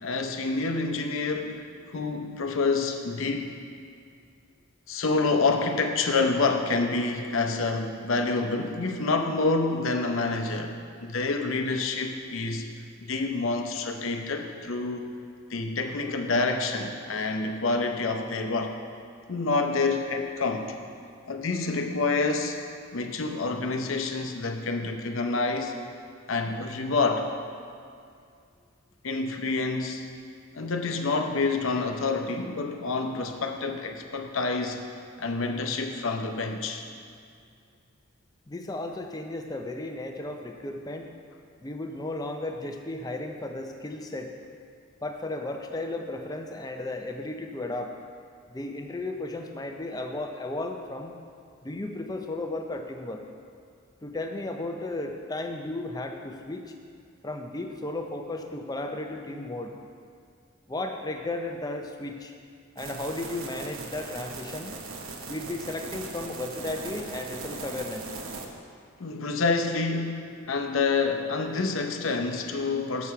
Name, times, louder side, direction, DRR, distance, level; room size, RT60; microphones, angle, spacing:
voice 1, 0.0-1.6 1.9-3.6 4.9-12.7 13.0-15.1 15.5-18.8 19.3-20.7 21.3-22.6 22.9-25.8 26.3-27.3 29.0-30.0 30.5-34.8 35.2-36.9 69.0-73.1, left 3 dB, 70° left, 5 dB, 0.7 m, -27 dB
voice 2, 38.5-41.3 41.6-44.3 45.0-48.0 48.5-51.1 51.6-53.2 54.0-56.6 57.2-59.8 60.7-62.3 62.8-64.7 65.3-68.1, left 2 dB, 20° left, 4 dB, 0.5 m, -34 dB
sound 1, 62.8-68.5, right 3 dB, 75° right, 0.8 m, -39 dB
7.1 x 6.4 x 5.6 m, 2.3 s
head